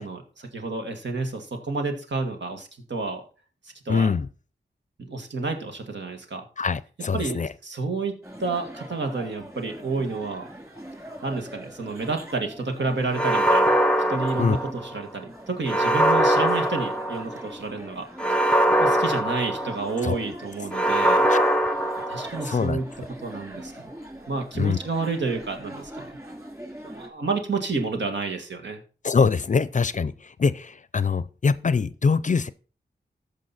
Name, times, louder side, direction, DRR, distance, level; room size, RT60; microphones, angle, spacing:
voice 1, 0.0-3.2 3.9-4.1 5.0-6.4 7.1-8.1 8.4-10.4 11.2-13.8 14.1-18.0 18.4-21.2 22.1-22.9 23.2-23.8 24.3-26.2 26.8-28.8, right 3 dB, 75° right, 2.0 m, -30 dB
voice 2, 3.9-4.3 6.6-7.5 14.4-14.6 20.0-20.2 21.3-21.6 22.5-22.8 24.5-24.8 29.0-32.5, left 5 dB, 45° left, 0.5 m, -23 dB
sound 1, 8.2-27.1, equal, 15° right, 2.8 m, -42 dB
sound 2, 13.1-15.0 15.7-17.5 18.2-20.1 20.7-22.6, right 1 dB, 5° left, 0.7 m, -22 dB
14.0 x 5.3 x 4.2 m
wide cardioid pair, 75°, 18 cm